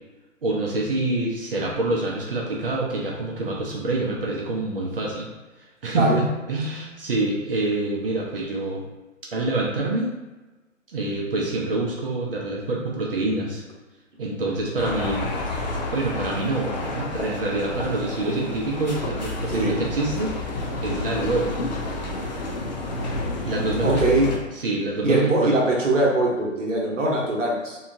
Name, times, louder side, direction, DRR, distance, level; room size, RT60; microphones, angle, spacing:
voice 1, 0.4-5.3 5.8-6.2 6.5-8.8 9.3-10.1 10.9-13.6 14.2-15.3 15.9-20.3 20.8-21.5 23.4-24.0 24.6-25.5, right 2 dB, 45° right, -2 dB, 0.6 m, -26 dB
sound 1, 14.8-24.4, left 2 dB, 35° left, 0.4 m, -29 dB
voice 2, 19.5-19.8 23.8-24.3 25.0-27.8, right 2 dB, 70° right, -2 dB, 0.9 m, -22 dB
2.9 x 2.3 x 2.5 m, 1.2 s
figure-of-eight pair, 135°, 39 cm